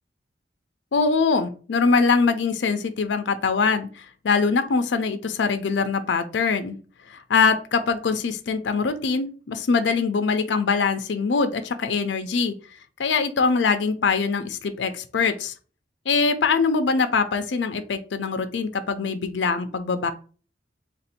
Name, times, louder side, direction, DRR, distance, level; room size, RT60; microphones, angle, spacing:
voice 1, 0.9-6.8 7.1-12.6 13.0-15.5 16.1-20.1, left 4 dB, 85° left, 10 dB, 0.5 m, -23 dB
3.4 x 2.5 x 4.2 m, 0.38 s
head